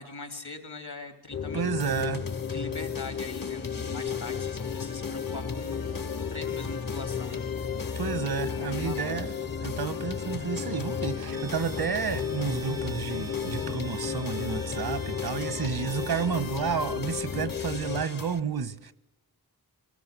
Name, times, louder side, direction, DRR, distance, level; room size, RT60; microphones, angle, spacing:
voice 1, 0.0-1.7 2.4-7.4 8.5-9.2, left 3 dB, 80° left, 3.3 m, -41 dB
sound 1, 1.3-18.1, left 7 dB, 40° left, 0.7 m, -34 dB
voice 2, 1.5-2.2 7.9-9.3 9.6-18.9, right 6 dB, 80° right, 1.2 m, -31 dB
sound 2, 1.8-18.4, left 4 dB, 60° left, 1.1 m, -41 dB
Bowed string instrument, 11.2-16.4, right 5 dB, 65° right, 0.7 m, -46 dB
24.0 x 18.0 x 8.2 m
wide cardioid pair, 65°, 38 cm